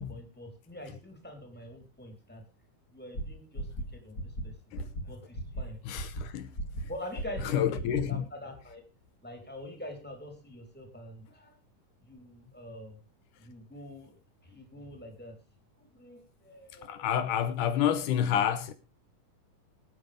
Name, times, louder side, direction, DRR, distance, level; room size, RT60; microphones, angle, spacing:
voice 1, 0.0-2.4 2.9-4.6 5.0-6.0 6.9-8.8 9.2-11.6 12.0-13.0 13.4-14.1 14.4-15.4 15.8-17.2, left 1 dB, 5° left, 3.9 m, -45 dB
sound 1, 3.1-3.2 3.6-3.8 4.2-4.4 4.8-5.0 5.3-5.6 6.0-6.2 6.6-6.8 7.2-7.4 7.8-8.0, right 1 dB, 30° left, 3.1 m, -34 dB
voice 2, 5.9-6.5 7.5-8.2 16.8-18.7, left 9 dB, 80° left, 2.6 m, -29 dB
23.5 x 9.2 x 3.5 m
omnidirectional pair, 3.6 m